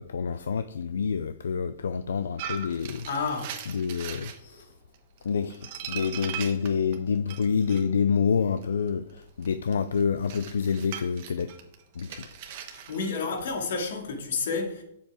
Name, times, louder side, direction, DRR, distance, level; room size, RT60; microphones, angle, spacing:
voice 1, 0.0-3.1 3.7-4.3 5.2-11.5 12.0-12.3, left 6 dB, 85° left, 0.5 m, -27 dB
sound 1, 2.4-4.4 4.9-7.8 8.6-13.4, right 9 dB, 40° right, 1.3 m, -39 dB
voice 2, 3.1-3.5 4.4-4.7 12.7-14.8, left 4 dB, 65° left, 2.3 m, -31 dB
7.5 x 7.2 x 4.8 m
hypercardioid pair, 155°, 0 cm